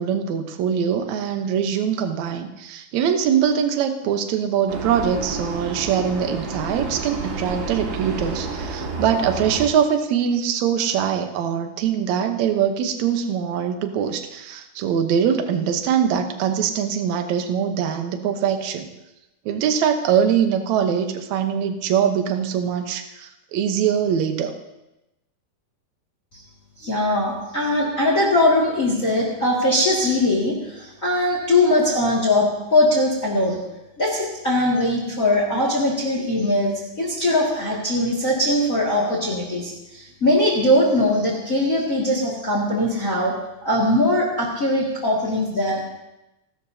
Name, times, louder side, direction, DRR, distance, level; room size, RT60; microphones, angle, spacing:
voice 1, 0.0-18.9 19.5-24.6, right 8 dB, 65° right, 6 dB, 2.0 m, -22 dB
Vehicle, 4.7-9.7, right 3 dB, 40° right, 2.2 m, -30 dB
voice 2, 26.8-33.6 34.0-43.3 43.6-45.9, left 1 dB, 30° left, -2 dB, 2.0 m, -21 dB
27.5 x 12.5 x 2.8 m, 0.95 s
omnidirectional pair, 4.0 m